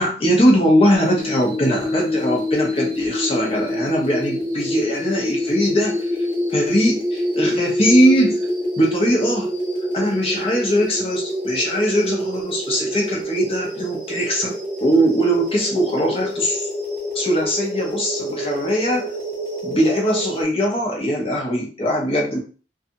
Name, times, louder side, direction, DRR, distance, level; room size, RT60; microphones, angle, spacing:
voice 1, 0.0-6.0 6.5-8.4 8.8-9.5 9.9-14.5 14.8-16.6 17.1-19.1 19.6-22.4, equal, 30° left, -1 dB, 0.8 m, -20 dB
sound 1, 0.9-20.4, equal, 15° left, 1.2 m, -26 dB
2.7 x 2.3 x 2.6 m, 0.37 s
head